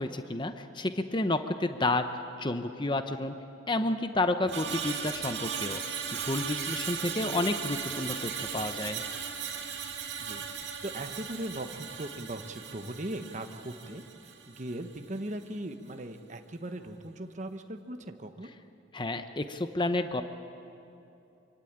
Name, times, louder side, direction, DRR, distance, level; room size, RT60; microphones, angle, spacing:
voice 1, 0.0-2.1 2.4-3.4 3.7-5.8 6.1-9.0 18.9-20.2, left 2 dB, 25° left, 8 dB, 0.9 m, -30 dB
Screech, 4.5-14.8 15.2-15.4, right 7 dB, 60° right, 2.5 m, -37 dB
voice 2, 7.0-7.4 10.2-10.4 10.8-18.5, right 1 dB, 35° right, 6 dB, 1.2 m, -39 dB
25.5 x 24.5 x 8.9 m, 2.8 s
head